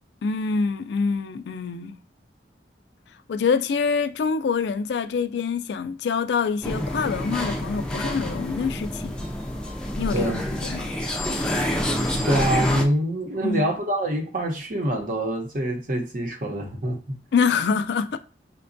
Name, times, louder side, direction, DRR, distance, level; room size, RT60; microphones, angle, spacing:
voice 1, 0.2-2.0 3.3-9.1 10.0-10.9 13.4-13.7 17.3-18.2, left 5 dB, 75° left, 0.3 m, -25 dB
sound 1, 6.6-12.8, left 1 dB, 5° left, 0.4 m, -28 dB
voice 2, 12.2-17.2, right 1 dB, 50° right, 0.8 m, -25 dB
5.8 x 2.2 x 2.5 m
head